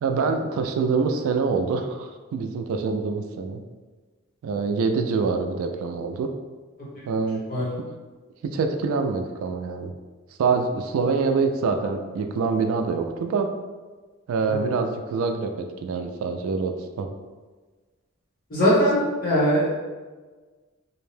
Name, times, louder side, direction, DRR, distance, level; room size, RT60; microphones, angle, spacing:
voice 1, 0.0-3.6 4.4-6.3 7.1-7.4 7.8-8.0 8.4-9.9 10.4-13.5 14.3-17.1, right 4 dB, 75° right, 6 dB, 0.3 m, -25 dB
voice 2, 18.5-19.8, equal, 45° left, -7 dB, 1.0 m, -21 dB
2.6 x 2.1 x 3.1 m, 1.3 s
head